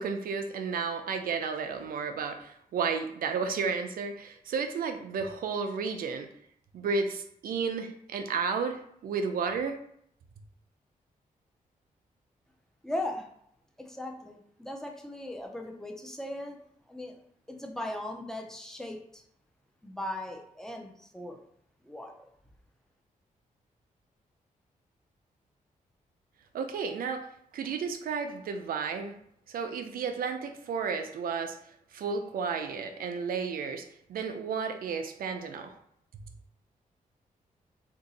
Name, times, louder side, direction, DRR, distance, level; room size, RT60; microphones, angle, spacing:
voice 1, 0.0-6.3 6.7-9.8 26.5-27.3 27.5-29.2 29.5-31.6 31.9-33.8 34.1-35.7, right 5 dB, 85° right, 6 dB, 0.5 m, -32 dB
voice 2, 12.8-13.3 13.8-16.6 16.9-17.2 17.5-19.2 19.8-21.4 21.8-22.3, left 1 dB, 5° left, 2 dB, 0.5 m, -38 dB
2.8 x 2.6 x 4.0 m, 0.70 s
wide cardioid pair, 120°, 15 cm